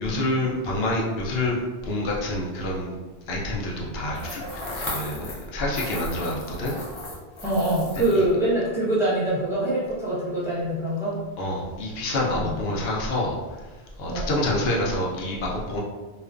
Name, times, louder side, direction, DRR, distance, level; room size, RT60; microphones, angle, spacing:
voice 1, 0.0-2.9 3.3-6.8 8.1-8.2 11.4-13.6 14.0-15.8, left 1 dB, 80° left, -3 dB, 0.8 m, -27 dB
sound 1, 4.1-5.5 5.7-8.3, left 1 dB, 45° left, 0.4 m, -35 dB
voice 2, 7.4-11.1 12.4-12.6 14.0-14.3, right 1 dB, 5° right, -10 dB, 0.7 m, -24 dB
2.4 x 2.1 x 2.4 m, 1.3 s
omnidirectional pair, 1.0 m